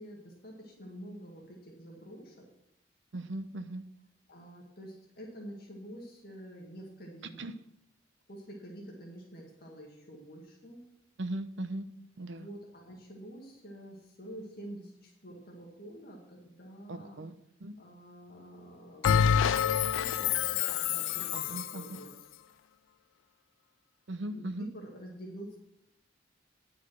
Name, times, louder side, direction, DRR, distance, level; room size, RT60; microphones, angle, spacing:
voice 1, 0.0-2.5 4.3-7.4 8.3-10.8 12.3-17.2 17.8-22.1 24.3-25.6, equal, 50° left, -2 dB, 1.9 m, -47 dB
voice 2, 3.1-3.8 7.4-7.5 11.2-11.9 12.2-12.5 16.9-17.3 17.6-17.8 21.3-22.0 24.1-24.7, right 1 dB, 65° right, 10 dB, 0.7 m, -38 dB
Bell, 19.0-21.8, left 8 dB, 85° left, 0.4 m, -27 dB
9.8 x 6.0 x 6.2 m, 0.83 s
head